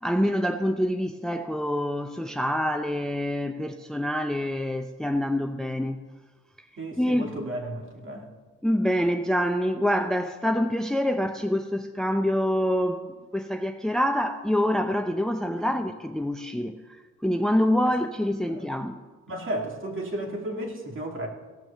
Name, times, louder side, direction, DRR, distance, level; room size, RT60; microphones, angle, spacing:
voice 1, 0.0-6.0 6.6-7.5 8.6-19.0, equal, ahead, 6 dB, 0.6 m, -26 dB
voice 2, 6.8-8.3 15.6-15.7 18.5-18.7 19.3-21.3, right 1 dB, 40° right, 1 dB, 2.6 m, -33 dB
15.5 x 6.2 x 6.6 m, 1.3 s
cardioid pair, 90°, 30 cm